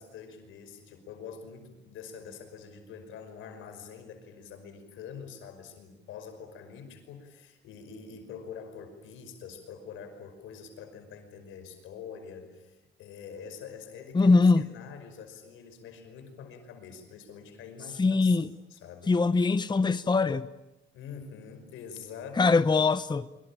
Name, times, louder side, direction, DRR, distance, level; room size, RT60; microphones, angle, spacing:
voice 1, 0.0-19.5 20.9-22.6, left 6 dB, 90° left, 5.5 m, -45 dB
voice 2, 14.1-14.6 18.0-18.5 19.1-20.5 22.4-23.3, left 3 dB, 20° left, 0.9 m, -22 dB
25.0 x 25.0 x 8.8 m
cardioid pair, 90°, 20 cm